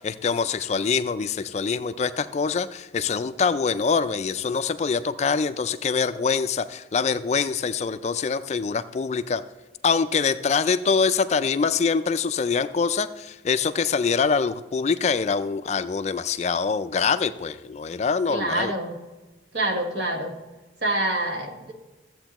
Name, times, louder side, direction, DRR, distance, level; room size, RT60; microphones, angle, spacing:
voice 1, 0.0-9.4 9.8-18.7, left 5 dB, 35° left, 13 dB, 0.3 m, -24 dB
voice 2, 18.3-19.0 19.5-20.3 20.8-21.7, right 1 dB, 60° right, 4 dB, 1.3 m, -26 dB
14.0 x 8.0 x 2.9 m, 1.2 s
head